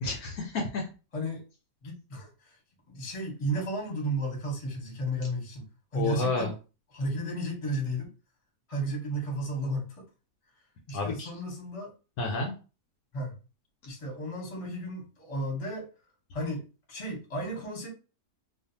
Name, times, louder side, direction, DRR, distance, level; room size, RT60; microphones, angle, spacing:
voice 1, 0.0-0.9 5.9-6.5 10.9-11.3 12.2-12.5, left 3 dB, 70° left, 1.0 m, -30 dB
voice 2, 1.8-2.6 2.9-5.6 5.9-6.5 6.9-8.1 8.7-10.0 10.9-11.9 13.1-13.4 13.8-15.9 16.3-17.9, right 1 dB, 25° left, 0.9 m, -33 dB
2.6 x 2.3 x 2.6 m
omnidirectional pair, 1.8 m